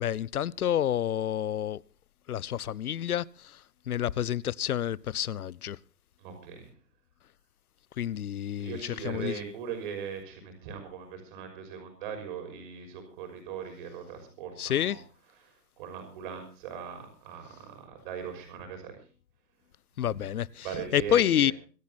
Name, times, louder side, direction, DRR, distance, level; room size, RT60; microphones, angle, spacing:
voice 1, 0.0-1.8 2.3-3.3 3.9-5.8 8.0-9.3 14.6-15.0 20.0-20.6 20.9-21.5, left 10 dB, 60° left, 0.7 m, -28 dB
voice 2, 6.2-6.7 8.6-15.0 15.8-19.0 20.1-20.2 20.6-21.5, right 6 dB, 30° right, 6.0 m, -40 dB
25.0 x 10.5 x 4.1 m
hypercardioid pair, 160°, 50 cm